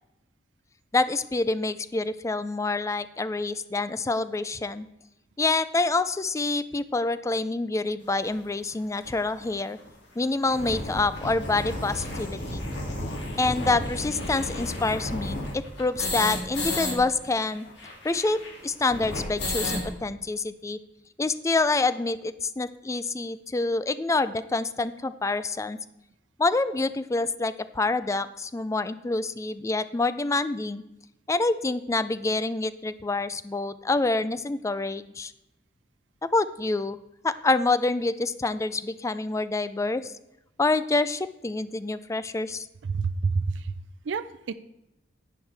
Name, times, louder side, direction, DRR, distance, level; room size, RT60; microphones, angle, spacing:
voice 1, 0.9-4.9 5.4-9.8 10.2-12.6 13.4-17.7 18.0-20.8 21.2-25.8 26.4-30.8 31.3-35.3 36.2-37.0 37.2-40.1 40.6-42.7, left 3 dB, 15° left, 14 dB, 0.4 m, -27 dB
sound 1, 8.3-8.4 9.0-9.1 9.4-9.5 9.8-9.9 10.3-16.9 17.2-17.3 17.5-19.9, left 1 dB, 70° left, 2.4 m, -32 dB
voice 2, 42.9-43.6 44.1-44.5, right 4 dB, 80° right, 12 dB, 0.4 m, -28 dB
11.0 x 9.7 x 3.4 m, 0.91 s
head